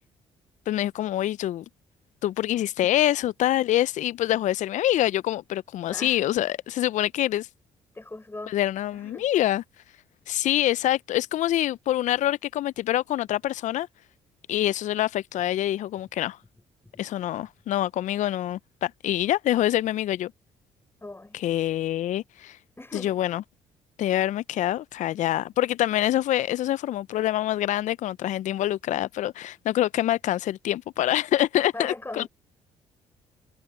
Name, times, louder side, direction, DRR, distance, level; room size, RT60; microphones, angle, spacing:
voice 1, 0.7-1.6 2.2-7.5 8.5-9.6 10.3-13.9 14.5-16.4 17.0-20.3 21.3-22.6 23.0-23.4 24.0-32.3, left 13 dB, 60° left, 0.7 m, -25 dB
voice 2, 5.9-6.3 7.9-8.5 8.9-9.3 21.0-21.4 22.8-23.2 31.7-32.3, left 2 dB, 15° left, 5.5 m, -39 dB
hypercardioid pair, 50°, 14 cm